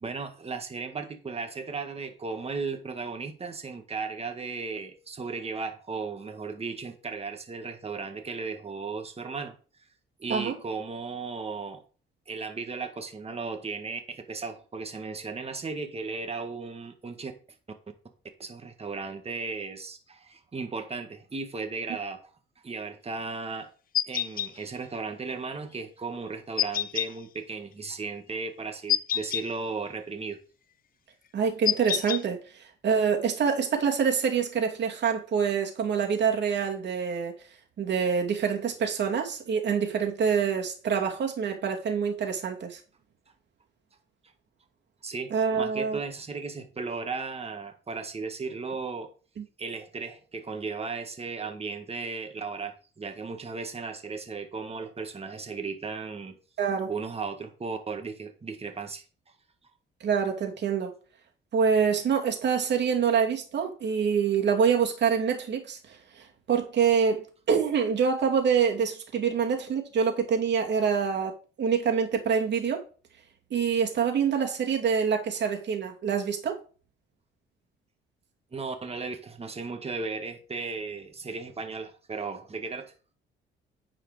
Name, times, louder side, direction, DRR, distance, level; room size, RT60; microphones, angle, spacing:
voice 1, 0.0-9.5 10.2-11.8 12.3-17.3 18.4-22.3 22.6-23.7 24.1-30.4 45.0-49.1 49.6-56.4 56.9-59.0 78.5-82.9, right 4 dB, 30° right, 1.8 m, -36 dB
sound 1, 23.9-24.5 26.6-27.1 28.9-29.4 31.6-32.2, left 10 dB, 45° left, 0.4 m, -27 dB
voice 2, 31.3-37.3 37.8-42.8 45.3-46.0 49.4-49.5 56.6-56.9 60.0-60.9 61.5-71.3 71.6-72.8 73.5-76.6, right 6 dB, 60° right, 2.6 m, -26 dB
9.8 x 5.0 x 5.0 m
cardioid pair, 90°, 20 cm